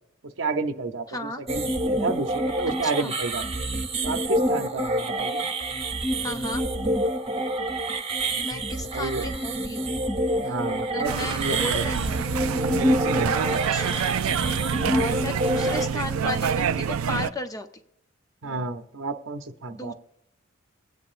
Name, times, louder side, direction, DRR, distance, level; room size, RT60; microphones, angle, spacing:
voice 1, 0.4-3.4 4.0-5.5 8.9-9.3 10.4-11.8 13.0-13.5 18.4-19.9, right 3 dB, 60° right, 7 dB, 0.8 m, -31 dB
voice 2, 1.1-1.4 2.8-3.1 6.2-6.6 8.4-9.9 10.4-10.6 10.8-12.3 13.5-14.2 14.9-17.7 18.4-18.7 19.7-19.9, left 1 dB, 15° left, 7 dB, 0.6 m, -34 dB
sound 1, 1.5-15.9, right 1 dB, 25° right, 0.9 m, -27 dB
sound 2, 11.0-17.3, right 7 dB, 85° right, 0.4 m, -27 dB
23.0 x 8.9 x 2.5 m, 0.81 s
head